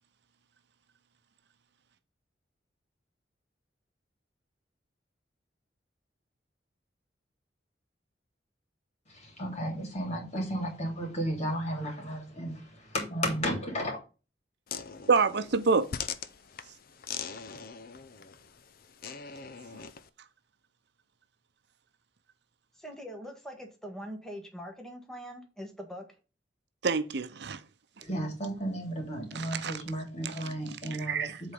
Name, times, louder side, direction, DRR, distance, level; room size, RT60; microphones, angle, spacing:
voice 1, 9.1-14.0 28.0-31.3, equal, 40° left, 3.1 m, -33 dB
sound 1, 14.7-20.1, left 7 dB, 55° left, 0.6 m, -41 dB
voice 2, 15.1-15.9 26.8-27.6 29.3-29.8 30.2-30.3 31.1-31.4, right 4 dB, 70° right, 0.7 m, -27 dB
voice 3, 22.8-26.1, equal, 5° left, 1.6 m, -42 dB
7.9 x 4.0 x 5.4 m
head